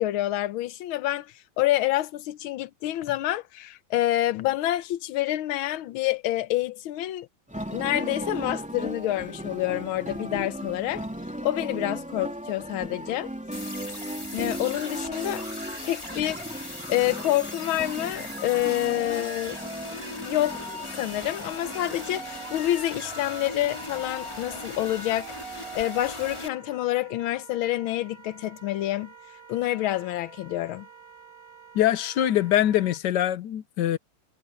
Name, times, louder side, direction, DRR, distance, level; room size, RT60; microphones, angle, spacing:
voice 1, 0.0-7.3 7.7-11.0 11.4-13.3 14.3-15.5 15.8-19.6 20.2-20.6 20.9-29.1 29.5-30.9, left 14 dB, 85° left, 1.6 m, -28 dB
sound 1, 7.5-25.8, equal, 5° right, 3.0 m, -38 dB
sound 2, 13.5-26.5, left 1 dB, 15° left, 3.7 m, -38 dB
Wind instrument woodwind instrument, 20.3-33.0, right 6 dB, 90° right, 4.0 m, -50 dB
voice 2, 31.7-34.0, left 12 dB, 65° left, 1.2 m, -23 dB
omnidirectional pair, 2.2 m